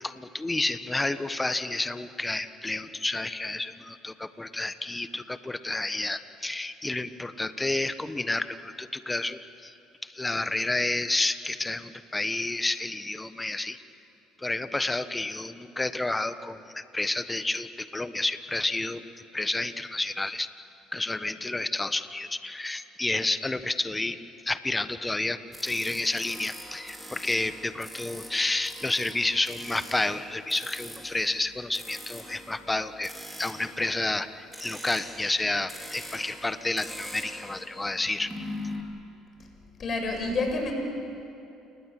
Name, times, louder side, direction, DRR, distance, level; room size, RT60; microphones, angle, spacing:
voice 1, 0.0-9.7 10.0-13.8 14.4-19.0 19.3-20.5 20.9-24.2 24.4-33.1 33.4-38.3, left 2 dB, 15° left, 12 dB, 1.3 m, -30 dB
sound 1, 25.5-38.8, equal, 5° right, 4.0 m, -43 dB
voice 2, 39.8-40.7, left 3 dB, 45° left, 3 dB, 6.5 m, -28 dB
29.0 x 19.5 x 7.7 m, 2.7 s
supercardioid pair, 75°, 0 cm